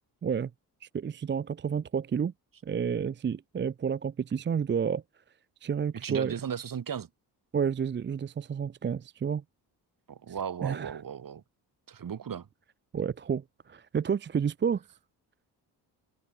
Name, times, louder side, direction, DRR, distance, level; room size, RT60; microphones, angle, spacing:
voice 1, 0.8-2.3 2.6-5.0 5.6-6.3 7.5-9.4 10.6-11.0 12.9-14.8, right 7 dB, 30° right, 0.5 m, -30 dB
voice 2, 6.0-7.1 10.1-11.4 11.9-12.5, right 8 dB, 55° right, 3.6 m, -36 dB
cardioid pair, 80°, 41 cm